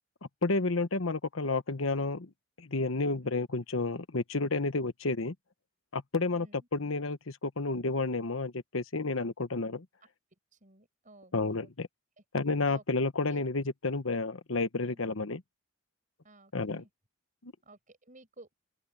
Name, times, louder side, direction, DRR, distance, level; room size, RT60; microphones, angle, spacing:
voice 1, 0.4-2.3 2.6-5.3 5.9-9.8 11.3-11.9 12.3-15.4 16.5-16.8 17.4-17.5, left 3 dB, 85° left, 1.3 m, -31 dB
voice 2, 6.3-6.7 10.5-11.7 12.2-12.3 12.6-12.8 13.3-13.4 14.9-15.1 16.2-16.9 17.6-18.5, right 2 dB, 40° right, 7.0 m, -55 dB
open air
head